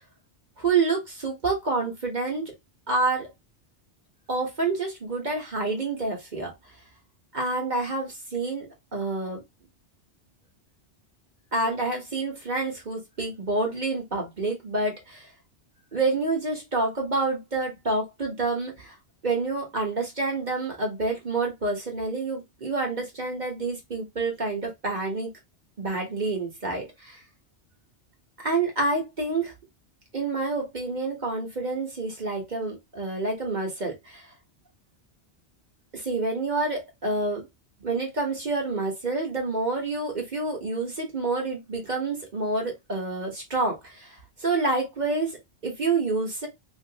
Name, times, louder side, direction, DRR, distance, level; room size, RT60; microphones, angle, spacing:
voice 1, 0.6-2.5 2.9-3.3 4.3-6.5 7.3-9.4 11.5-15.2 15.9-18.9 19.2-25.3 25.8-27.2 28.4-29.5 30.1-34.3 35.9-37.5 37.8-45.4 45.6-46.5, right 3 dB, 40° right, 1.4 m, -28 dB
3.1 x 3.0 x 2.9 m
omnidirectional pair, 1.1 m